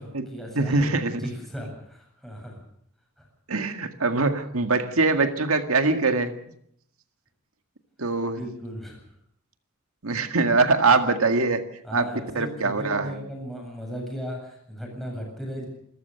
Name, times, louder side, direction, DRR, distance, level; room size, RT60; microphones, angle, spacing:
voice 1, 0.0-2.6 3.2-3.3 8.3-9.0 11.8-15.7, equal, ahead, 0 dB, 7.9 m, -36 dB
voice 2, 0.6-1.3 3.5-6.3 8.0-8.4 10.0-11.6 11.9-13.1, right 3 dB, 75° right, 7 dB, 1.9 m, -23 dB
27.5 x 14.0 x 6.8 m, 0.70 s
head